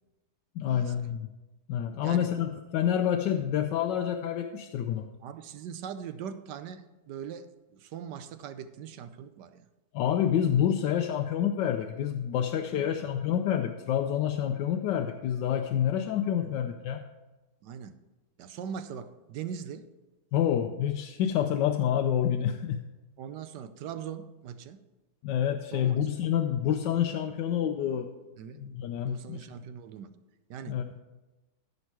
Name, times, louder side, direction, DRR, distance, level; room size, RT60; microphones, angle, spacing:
voice 1, 0.6-1.3 1.7-5.1 9.9-17.0 20.3-22.8 25.2-28.1 28.5-29.4 30.7-30.8, left 9 dB, 85° left, 5 dB, 1.3 m, -28 dB
voice 2, 5.2-9.7 12.7-13.0 16.4-16.6 17.6-17.9 18.4-19.9 23.2-24.8 25.7-26.0 28.4-28.6 29.0-30.1 30.5-31.0, right 8 dB, 75° right, 11 dB, 1.3 m, -41 dB
14.5 x 5.4 x 4.7 m, 1.1 s
omnidirectional pair, 1.9 m